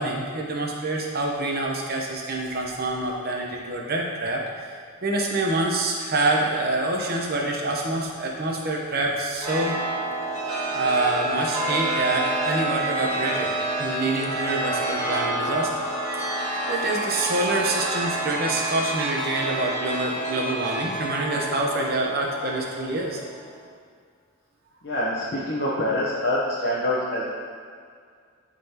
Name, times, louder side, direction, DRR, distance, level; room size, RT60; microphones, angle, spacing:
voice 1, 0.0-9.7 10.7-13.5 13.8-15.9 16.2-16.4 16.7-23.2, right 2 dB, 45° right, -1 dB, 0.8 m, -26 dB
Chime, 9.4-23.6, right 2 dB, 15° right, 1.4 m, -28 dB
voice 2, 24.8-27.2, left 1 dB, 50° left, -7 dB, 0.8 m, -25 dB
11.0 x 3.8 x 2.9 m, 2.1 s
head